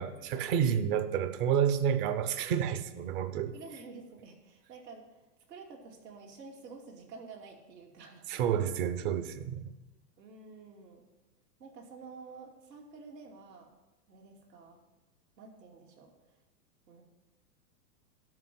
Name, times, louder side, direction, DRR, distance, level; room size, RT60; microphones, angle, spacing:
voice 1, 0.0-3.5 8.3-9.7, right 8 dB, 35° right, 0.7 m, -29 dB
voice 2, 3.5-8.3 10.2-11.0 11.6-13.7 14.1-14.8 15.4-16.1 16.9-17.0, right 4 dB, 80° right, 2.8 m, -50 dB
12.5 x 5.2 x 7.8 m
hypercardioid pair, 140°, 49 cm